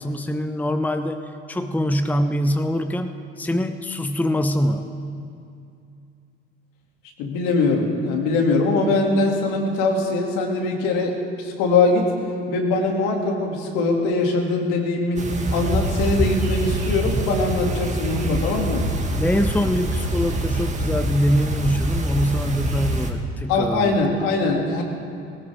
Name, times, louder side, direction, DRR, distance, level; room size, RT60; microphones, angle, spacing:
voice 1, 0.0-5.0 19.2-24.0, equal, 5° left, 8 dB, 0.9 m, -24 dB
voice 2, 7.2-12.1 12.5-15.2 15.5-18.8 23.5-24.8, left 3 dB, 65° left, 1 dB, 2.9 m, -22 dB
sound 1, 15.2-23.1, right 1 dB, 20° right, 2.3 m, -25 dB
20.0 x 18.5 x 3.7 m, 2.5 s
hypercardioid pair, 60°, 33 cm